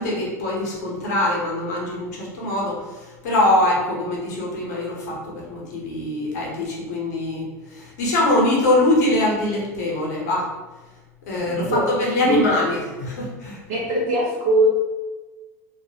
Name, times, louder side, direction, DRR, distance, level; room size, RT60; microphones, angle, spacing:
voice 1, 0.0-10.5 11.3-13.6, left 1 dB, 80° left, -3 dB, 0.8 m, -23 dB
voice 2, 11.5-11.9 12.2-12.6 13.7-14.7, right 2 dB, 75° right, -6 dB, 0.6 m, -21 dB
2.2 x 2.1 x 2.7 m, 1.2 s
hypercardioid pair, 95°, 9 cm